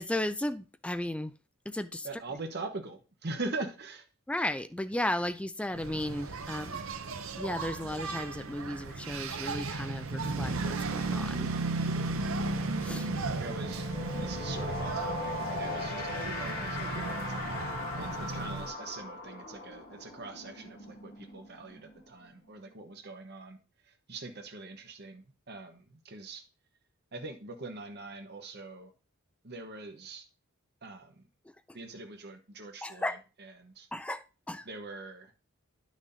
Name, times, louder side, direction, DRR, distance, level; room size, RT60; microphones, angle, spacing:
voice 1, 0.0-1.3 1.7-2.1 4.3-6.8 7.4-11.5 12.8-13.1 32.8-33.2 33.9-34.2 34.5-34.6, left 1 dB, 5° left, 0.3 m, -34 dB
voice 2, 2.0-4.0 11.9-12.3 13.3-13.9 14.1-17.5 18.0-23.6 24.1-26.4 27.1-28.9 29.4-30.2 30.8-31.2 31.7-33.9 34.6-35.3, right 3 dB, 50° right, 1.1 m, -42 dB
Engine, 5.7-18.7, right 3 dB, 70° right, 0.7 m, -35 dB
sound 1, 11.7-11.8 12.1-22.7, left 2 dB, 45° left, 2.4 m, -40 dB
10.5 x 6.2 x 2.7 m
head